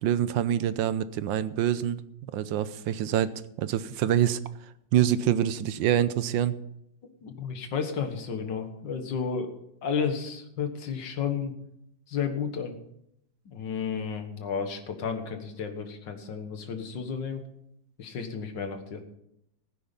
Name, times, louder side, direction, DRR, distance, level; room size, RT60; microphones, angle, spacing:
voice 1, 0.0-3.3 3.6-4.4 4.9-6.5, right 10 dB, 80° right, 14 dB, 1.4 m, -26 dB
voice 2, 7.2-9.5 9.8-11.5 12.1-12.8 13.5-17.4 18.0-19.0, left 6 dB, 70° left, 6 dB, 2.1 m, -32 dB
15.5 x 9.4 x 5.3 m, 0.78 s
omnidirectional pair, 2.0 m